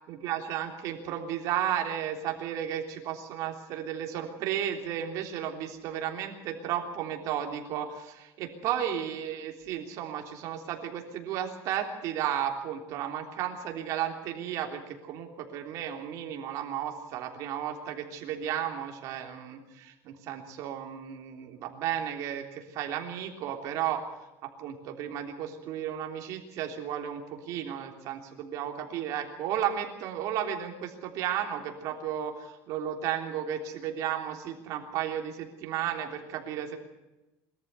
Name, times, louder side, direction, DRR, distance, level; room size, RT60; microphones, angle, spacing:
voice 1, 0.1-24.0 24.4-36.8, right 10 dB, 50° right, 3 dB, 3.4 m, -34 dB
22.5 x 13.5 x 8.3 m, 1.0 s
cardioid pair, 155°, 7 cm